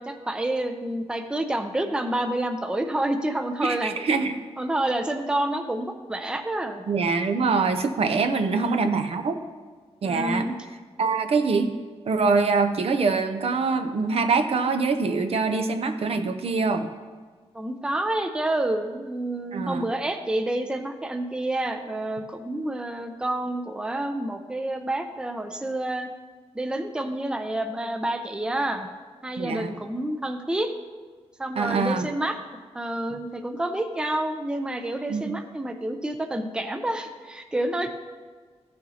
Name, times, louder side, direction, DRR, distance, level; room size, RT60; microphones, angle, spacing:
voice 1, 0.0-3.9 4.6-6.8 8.5-8.9 10.0-10.5 17.5-26.1 26.5-28.9 29.2-30.7 31.4-32.4 32.7-37.9, right 1 dB, 10° right, 6 dB, 0.5 m, -28 dB
voice 2, 3.6-4.3 6.9-9.4 10.0-10.5 11.0-11.7 12.1-16.9 19.5-19.8 29.4-29.7 31.6-32.1 35.1-35.3, right 4 dB, 60° right, 7 dB, 0.7 m, -24 dB
14.5 x 6.5 x 2.8 m, 1.5 s
wide cardioid pair, 140°, 11 cm